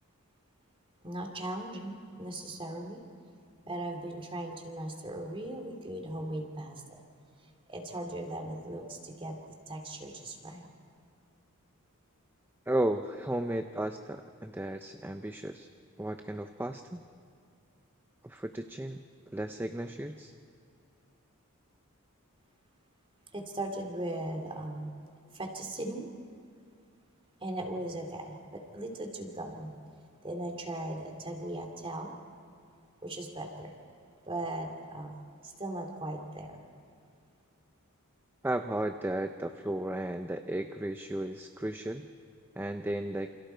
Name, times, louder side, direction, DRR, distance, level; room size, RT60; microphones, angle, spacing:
voice 1, 1.0-3.0 3.6-6.8 7.7-9.4 9.7-10.7 23.3-24.9 25.3-26.1 27.4-29.7 30.2-32.1 33.0-33.7 34.3-35.2 35.4-36.6, right 1 dB, 25° right, 3 dB, 2.6 m, -38 dB
voice 2, 12.7-15.7 16.0-17.0 18.2-19.0 19.3-20.3 38.4-42.1 42.6-43.3, right 1 dB, 10° right, 7 dB, 0.6 m, -34 dB
28.0 x 27.0 x 4.6 m, 2.4 s
head